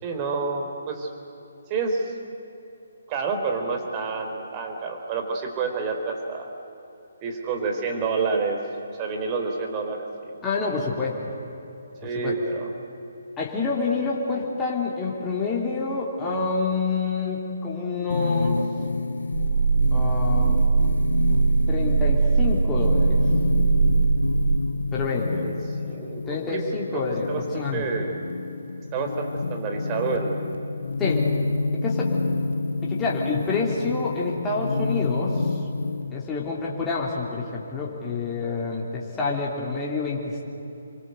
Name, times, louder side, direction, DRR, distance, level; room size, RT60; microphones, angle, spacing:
voice 1, 0.0-1.1 1.7-2.1 3.1-6.5 7.2-8.6 9.0-10.1 12.0-12.7 14.3-14.4 25.4-25.5 25.8-27.0 27.3-28.2 28.9-30.5 38.4-38.6, right 4 dB, 25° right, 4 dB, 4.0 m, -28 dB
voice 2, 10.4-11.2 12.2-12.3 13.4-18.6 19.9-20.6 21.3-21.4 21.7-23.2 24.9-25.5 26.3-28.0 31.0-31.2 31.7-32.1 32.8-35.5 36.1-40.4, left 4 dB, 15° left, -4 dB, 3.6 m, -28 dB
sound 1, 18.1-36.1, left 3 dB, 70° left, 1.2 m, -28 dB
sound 2, 19.3-24.6, right 5 dB, 60° right, 0.6 m, -21 dB
27.5 x 24.0 x 8.1 m, 3.0 s
figure-of-eight pair, 140°, 0 cm